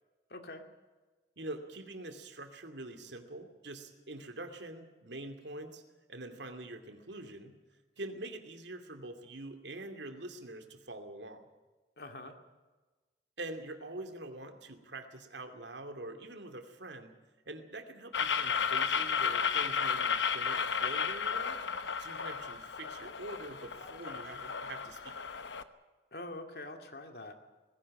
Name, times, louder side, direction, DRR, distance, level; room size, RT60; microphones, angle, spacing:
voice 1, 0.3-0.6 12.0-12.4 26.1-27.3, left 2 dB, 60° left, 5 dB, 2.4 m, -44 dB
voice 2, 1.4-5.8 6.1-7.6 8.0-11.4 13.4-17.1 17.5-21.6 22.0-25.2, right 2 dB, 85° right, 7 dB, 2.5 m, -45 dB
sound 1, 18.1-25.6, left 6 dB, 90° left, 1.1 m, -33 dB
Laughter, 20.0-25.3, right 1 dB, 35° right, 6.2 m, -60 dB
19.0 x 16.5 x 8.7 m, 1.2 s
head